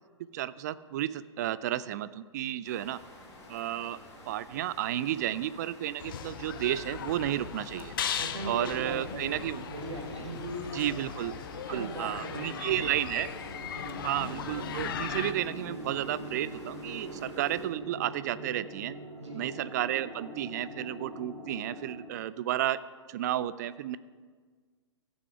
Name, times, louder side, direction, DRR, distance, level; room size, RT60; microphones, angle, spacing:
voice 1, 0.3-3.0 3.5-4.0 4.3-7.9 8.5-9.6 10.7-11.3 11.7-13.3 14.0-19.0 19.3-22.8 23.1-24.0, right 12 dB, 35° right, 16 dB, 0.3 m, -32 dB
sound 1, 2.6-17.7, left 1 dB, 20° left, 2.4 m, -51 dB
sound 2, 6.0-15.3, left 9 dB, 50° left, 0.6 m, -38 dB
voice 2, 8.1-11.0 11.7-12.9 13.7-14.1 19.2-19.5, right 1 dB, 75° right, 1 dB, 1.7 m, -39 dB
sound 3, 9.5-22.0, right 1 dB, 15° right, 3.5 m, -44 dB
14.5 x 6.3 x 4.8 m, 1.5 s
figure-of-eight pair, 110°, 15 cm